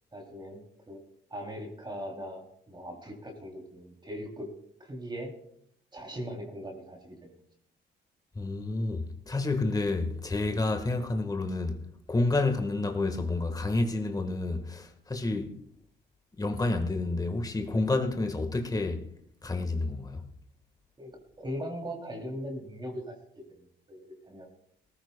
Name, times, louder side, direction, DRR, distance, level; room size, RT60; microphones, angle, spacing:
voice 1, 0.1-1.0 1.3-4.5 4.8-5.3 5.9-7.4 21.0-21.1 21.4-23.2 23.6-24.5, equal, 20° right, 2.8 m, -40 dB
voice 2, 8.3-11.8 12.1-15.5 16.4-19.0 19.4-20.2, left 2 dB, 20° left, 1.4 m, -29 dB
19.5 x 14.5 x 2.2 m
cardioid pair, 90°, 20 cm